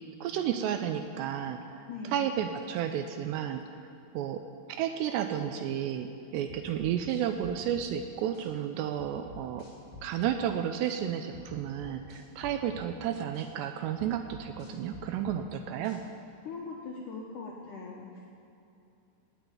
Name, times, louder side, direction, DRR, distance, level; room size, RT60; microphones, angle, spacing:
voice 1, 0.2-3.6 4.1-4.4 4.7-6.1 6.3-9.6 10.0-16.0, right 9 dB, 85° right, 7 dB, 2.6 m, -32 dB
voice 2, 1.9-2.3 16.5-18.3, left 4 dB, 85° left, -2 dB, 1.8 m, -41 dB
sound 1, 6.5-7.9 8.3-8.5 9.0-10.4 10.8-11.0 11.3-12.9 13.3-13.5 14.0-15.4 15.8-16.0, left 2 dB, 55° left, 4.6 m, -48 dB
17.5 x 6.2 x 9.1 m, 2.7 s
omnidirectional pair, 5.3 m